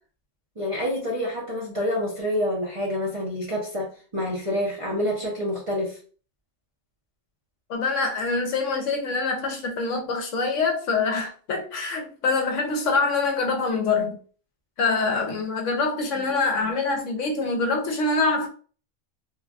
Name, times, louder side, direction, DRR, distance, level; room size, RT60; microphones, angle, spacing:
voice 1, 0.6-6.0, left 1 dB, 30° right, -5 dB, 0.6 m, -27 dB
voice 2, 7.7-14.2 14.8-18.5, left 3 dB, 70° left, 3 dB, 0.9 m, -25 dB
3.2 x 2.2 x 2.4 m, 0.40 s
omnidirectional pair, 1.4 m